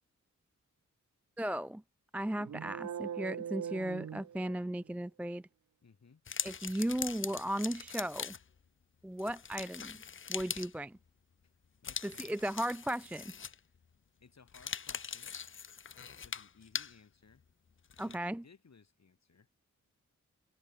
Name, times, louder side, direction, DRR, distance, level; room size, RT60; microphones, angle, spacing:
voice 1, 1.4-1.8 2.1-5.4 6.4-8.3 9.0-10.0 10.3-10.9 12.0-13.3 18.0-18.4, right 1 dB, 5° right, 0.3 m, -36 dB
sound 1, 2.4-4.9, right 8 dB, 70° right, 0.8 m, -41 dB
voice 2, 5.8-6.2 10.5-10.6 11.8-12.3 14.2-15.3 16.2-17.4 18.0-19.5, left 5 dB, 60° left, 6.9 m, -61 dB
sound 2, 6.3-8.6 9.2-10.7 11.8-13.8 14.5-17.0 17.9-18.2, left 6 dB, 40° left, 0.6 m, -41 dB
wide cardioid pair, 120°, 30 cm